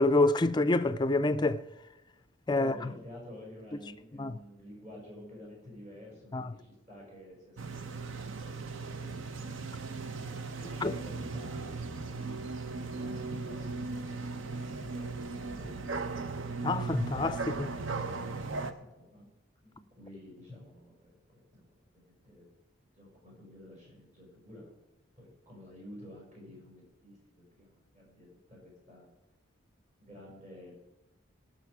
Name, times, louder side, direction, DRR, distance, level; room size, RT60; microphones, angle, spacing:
voice 1, 0.0-1.6 2.5-2.7 4.2-4.3 6.3-6.5 10.8-10.9 16.6-17.8, left 2 dB, 20° left, 0.4 m, -27 dB
voice 2, 2.5-8.0 8.4-9.7 10.3-15.8 17.6-19.3 19.6-21.6 21.9-22.5 22.9-24.7 25.2-29.1 30.0-30.8, left 1 dB, 40° right, 5.3 m, -51 dB
sound 1, 7.6-18.7, right 3 dB, 75° right, 0.8 m, -37 dB
18.5 x 6.3 x 4.8 m
head